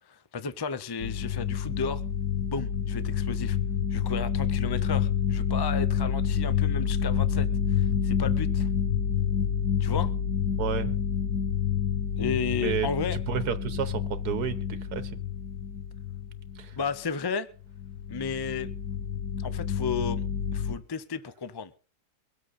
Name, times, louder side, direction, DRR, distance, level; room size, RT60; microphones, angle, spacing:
voice 1, 0.1-2.0 2.5-3.6 3.9-8.7 9.8-10.1 12.2-13.2 16.8-17.5 18.1-18.7 19.4-20.2 20.5-21.7, left 5 dB, 40° left, 0.3 m, -33 dB
sound 1, 1.0-16.9 17.6-20.8, left 8 dB, 75° left, 1.4 m, -28 dB
voice 2, 10.6-10.9 12.6-12.9 13.3-15.2 16.6-16.8, right 8 dB, 75° right, 1.6 m, -31 dB
23.5 x 7.9 x 4.1 m
omnidirectional pair, 1.7 m